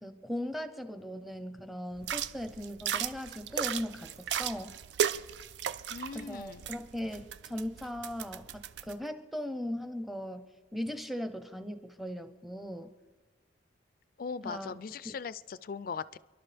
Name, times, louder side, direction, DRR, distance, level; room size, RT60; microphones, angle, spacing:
voice 1, 0.0-4.7 6.1-12.9 14.4-14.7 15.0-15.1, equal, ahead, 9 dB, 0.7 m, -38 dB
sound 1, 2.0-8.9, right 9 dB, 75° right, 0.4 m, -36 dB
voice 2, 5.9-6.6 14.2-16.2, left 5 dB, 55° left, 17 dB, 0.4 m, -39 dB
29.5 x 11.5 x 3.4 m, 1.2 s
head